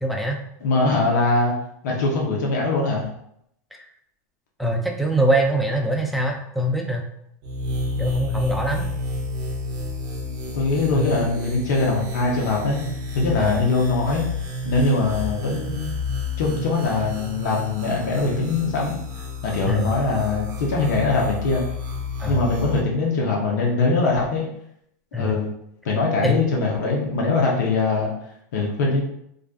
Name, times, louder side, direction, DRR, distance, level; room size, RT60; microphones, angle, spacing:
voice 1, 0.0-0.4 3.7-3.8 4.6-7.0 8.0-8.8 10.9-11.2 13.4-13.6 19.7-19.9 22.2-22.5 25.1-25.3 26.2-26.5, right 1 dB, ahead, 1 dB, 0.4 m, -23 dB
voice 2, 0.6-1.5 1.8-3.1 10.5-12.8 13.1-14.3 14.6-15.9 16.4-19.0 19.4-21.6 22.3-24.5 25.1-25.5 25.8-28.1 28.5-29.0, left 3 dB, 75° left, -2 dB, 0.6 m, -22 dB
sound 1, 7.4-22.8, left 2 dB, 45° right, 0.6 m, -30 dB
2.5 x 2.2 x 2.4 m, 0.74 s
hypercardioid pair, 110°, 9 cm